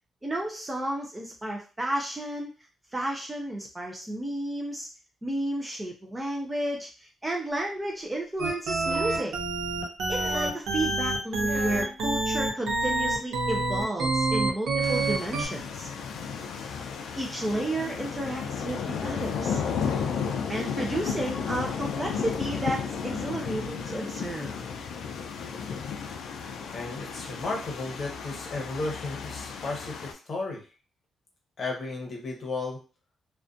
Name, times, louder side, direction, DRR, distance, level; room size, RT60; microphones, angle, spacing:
voice 1, 0.2-2.5 2.9-4.9 5.2-9.3 10.1-15.9 17.2-19.6 20.5-24.5, right 1 dB, 15° right, 0 dB, 0.3 m, -32 dB
sound 1, 8.4-15.5, right 2 dB, 80° right, 0.6 m, -27 dB
sound 2, 8.8-9.4 10.1-10.7 11.4-12.0 13.2-13.3, left 1 dB, 15° left, 0.9 m, -37 dB
sound 3, 14.8-30.1, left 6 dB, 80° left, 0.3 m, -33 dB
voice 2, 26.7-30.6 31.6-32.8, left 3 dB, 40° left, -1 dB, 0.8 m, -34 dB
2.5 x 2.2 x 2.5 m, 0.34 s
wide cardioid pair, 165°, 0 cm